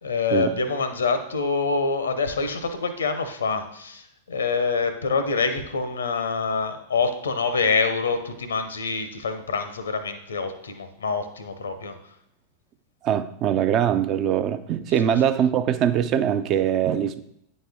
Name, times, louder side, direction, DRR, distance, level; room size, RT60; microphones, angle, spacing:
voice 1, 0.0-12.0 15.0-15.1, left 4 dB, 70° left, 9 dB, 0.7 m, -26 dB
voice 2, 13.0-17.2, right 9 dB, 35° right, 11 dB, 0.4 m, -22 dB
9.0 x 4.3 x 3.5 m, 0.75 s
figure-of-eight pair, 90°, 0 cm